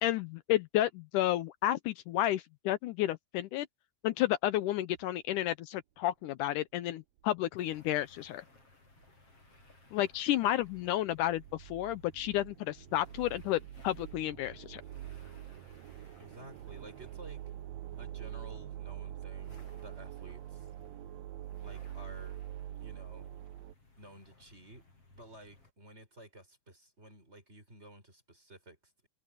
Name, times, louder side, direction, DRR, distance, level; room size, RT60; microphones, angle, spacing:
voice 1, 0.0-3.7 4.0-8.4 9.9-14.8, left 13 dB, 80° left, 2.1 m, -31 dB
sound 1, 4.9-5.0 7.2-7.3 9.0-9.1 9.6-9.7 10.2-23.7, right 12 dB, 80° right, 1.5 m, -45 dB
sound 2, 7.6-25.7, left 3 dB, 45° left, 7.8 m, -61 dB
voice 2, 16.2-17.4 18.0-20.7 21.6-22.4 22.8-23.3 24.0-29.1, right 1 dB, 20° right, 4.4 m, -53 dB
omnidirectional pair, 3.8 m